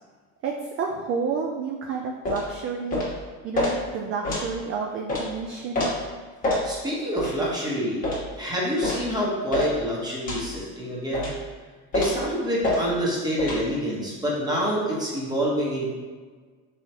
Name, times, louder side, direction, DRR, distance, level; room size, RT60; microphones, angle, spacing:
voice 1, 0.8-3.0 3.4-5.9, right 5 dB, 40° right, 1 dB, 0.4 m, -30 dB
sound 1, 2.2-2.4 2.9-3.1 3.5-3.7 4.2-4.5 5.1-5.2 5.7-5.9 6.4-6.6 7.2-7.3 8.0-8.2 8.8-9.0 9.5-9.7 10.3-10.5 11.1-11.4 11.9-12.2 12.6-12.8 13.4-13.6, left 2 dB, 25° left, 1.2 m, -26 dB
voice 2, 6.6-8.0 8.4-11.3 11.9-15.9, equal, 10° right, -5 dB, 1.1 m, -27 dB
3.6 x 3.4 x 2.9 m, 1.4 s
supercardioid pair, 110°, 33 cm